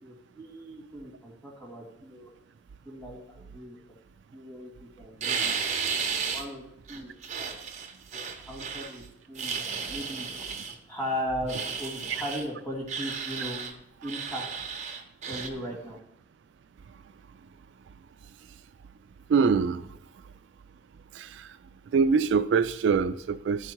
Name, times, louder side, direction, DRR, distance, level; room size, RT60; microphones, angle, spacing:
voice 1, 0.0-2.3 2.8-3.8 4.3-5.5 6.3-6.6 6.9-7.6 8.1-9.0 9.3-10.3 10.9-13.6 14.0-14.8 15.3-16.0, equal, 10° left, -3 dB, 2.5 m, -37 dB
sound 1, 5.2-6.5 6.9-9.0 9.4-10.8 11.5-12.5 12.9-13.7 14.0-15.5, right 6 dB, 40° right, 0.8 m, -33 dB
voice 2, 19.3-19.8 21.1-21.5 21.9-23.7, right 5 dB, 70° right, 12 dB, 0.3 m, -24 dB
12.0 x 4.8 x 4.5 m, 0.76 s
head